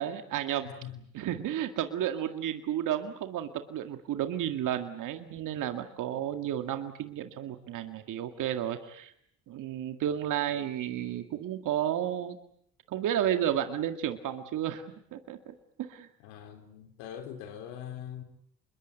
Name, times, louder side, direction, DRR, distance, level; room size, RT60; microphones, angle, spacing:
voice 1, 0.0-0.7 1.1-9.1 9.5-12.4 12.9-14.8 15.1-15.5 15.9-16.1, right 10 dB, 70° right, 7 dB, 2.1 m, -32 dB
voice 2, 0.6-1.1 16.2-18.2, left 9 dB, 85° left, 7 dB, 3.8 m, -42 dB
27.0 x 22.0 x 8.3 m, 0.69 s
supercardioid pair, 65°, 33 cm